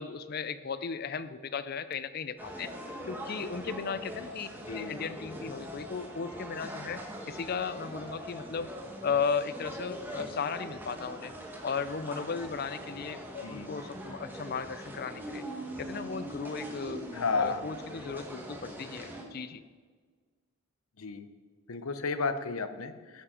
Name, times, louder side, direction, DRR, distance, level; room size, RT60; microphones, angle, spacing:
voice 1, 0.0-2.7 3.0-4.5 4.7-7.0 7.3-8.7 9.0-11.3 11.6-15.4 15.8-17.0 17.3-19.6, left 5 dB, 45° left, 14 dB, 0.4 m, -35 dB
sound 1, 2.4-19.2, equal, 10° right, 1.1 m, -42 dB
voice 2, 4.7-5.0 13.4-13.7 17.1-17.6 21.0-21.3 21.7-23.2, left 4 dB, 75° left, 11 dB, 0.7 m, -32 dB
11.0 x 7.4 x 4.9 m, 1.5 s
head